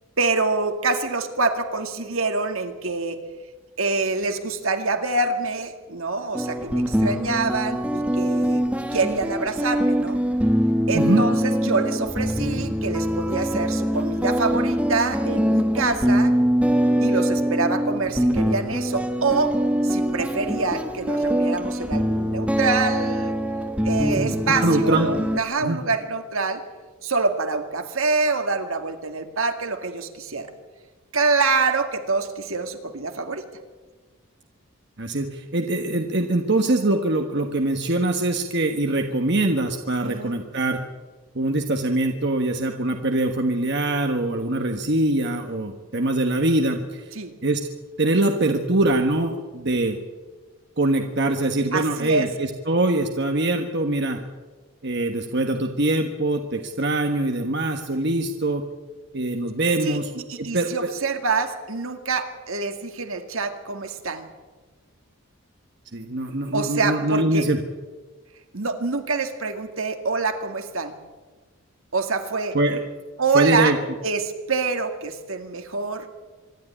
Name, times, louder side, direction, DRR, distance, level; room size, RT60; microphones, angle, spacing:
voice 1, 0.2-3.2 3.8-8.6 8.9-10.2 10.9-16.3 17.0-19.6 19.8-23.4 23.8-26.6 27.0-30.5 31.1-33.4 40.0-40.3 47.1-47.3 51.7-52.3 59.8-64.3 66.5-67.4 68.5-71.0 71.9-72.6 73.2-73.7 74.0-76.1, right 3 dB, 75° right, 6 dB, 2.2 m, -26 dB
sound 1, 6.3-25.4, equal, 5° right, 1.2 m, -23 dB
voice 2, 24.6-25.1 25.6-25.8 35.0-40.8 41.3-47.1 47.4-47.7 48.0-50.0 50.8-54.2 54.8-58.6 59.1-60.1 60.4-60.9 65.9-67.6 72.5-72.8 73.3-73.8, right 2 dB, 55° right, 4 dB, 1.4 m, -23 dB
25.5 x 12.0 x 10.0 m, 1.3 s
head